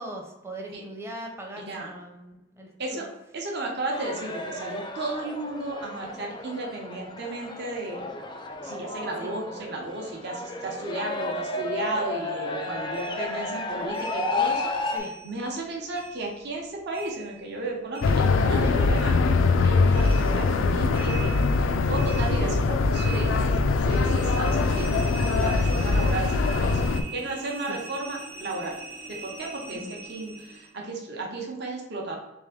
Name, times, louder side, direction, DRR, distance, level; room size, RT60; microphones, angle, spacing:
voice 1, 0.0-3.1 9.2-9.3 14.9-15.1 18.6-18.7 20.2-20.3 23.5-23.6 27.7-27.8 29.7-29.9, right 1 dB, 15° right, 1 dB, 0.6 m, -40 dB
voice 2, 1.6-1.9 2.8-3.1 3.3-8.1 8.6-14.9 15.2-19.2 19.6-23.4 23.9-26.8 27.1-28.8 29.1-29.8 30.1-32.2, right 2 dB, 60° right, -1 dB, 0.8 m, -33 dB
sound 1, 3.9-15.0, left 2 dB, 25° left, 0.4 m, -33 dB
sound 2, 12.9-15.7 15.9-18.7 18.9-30.7, right 4 dB, 85° right, 1.1 m, -43 dB
sound 3, 18.0-27.0, left 3 dB, 90° left, 0.4 m, -22 dB
3.5 x 3.3 x 3.6 m, 0.96 s
head